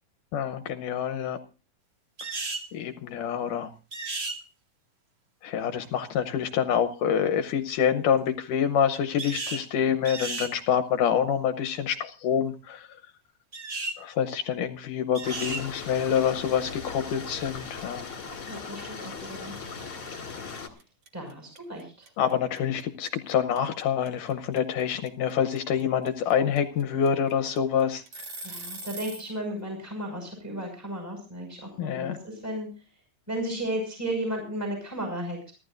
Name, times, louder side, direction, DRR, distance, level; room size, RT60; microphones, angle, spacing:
voice 1, 0.3-1.4 2.7-3.7 5.4-12.9 14.0-18.0 22.2-28.3 31.8-32.2, left 8 dB, 75° left, 7 dB, 2.3 m, -26 dB
sound 1, 2.2-2.7 3.9-4.4 9.2-9.7 10.0-10.5 13.5-14.0 15.1-15.6, right 3 dB, 85° right, 0.5 m, -33 dB
sound 2, 15.2-20.7, left 5 dB, 40° left, 2.9 m, -39 dB
sound 3, 18.1-18.3 18.6-29.3, right 2 dB, 45° right, 2.1 m, -42 dB
voice 2, 18.5-19.5 21.1-22.1 28.4-32.7 33.3-35.5, right 1 dB, 5° right, 1 dB, 5.8 m, -34 dB
29.0 x 12.0 x 2.6 m, 0.33 s
omnidirectional pair, 3.8 m